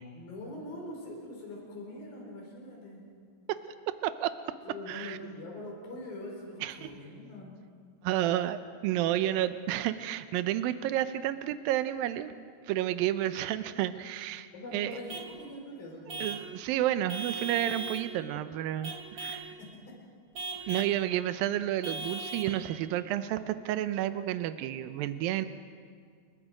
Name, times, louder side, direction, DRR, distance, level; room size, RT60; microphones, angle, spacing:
voice 1, 0.1-3.0 4.6-7.6 14.5-16.4 19.6-19.7 20.6-20.7, left 1 dB, 80° left, -1 dB, 6.4 m, -43 dB
voice 2, 3.9-4.3 4.9-5.2 6.6-6.9 8.0-12.3 12.6-15.0 16.2-19.6 20.7-25.5, right 13 dB, 85° right, 11 dB, 2.5 m, -31 dB
Vehicle horn car horn honking / Truck, 15.1-15.4 16.1-16.5 17.1-18.1 18.8-19.5 20.3-21.0 21.8-22.6, right 3 dB, 35° right, 2.7 m, -38 dB
29.5 x 21.5 x 5.1 m, 2.1 s
omnidirectional pair, 4.1 m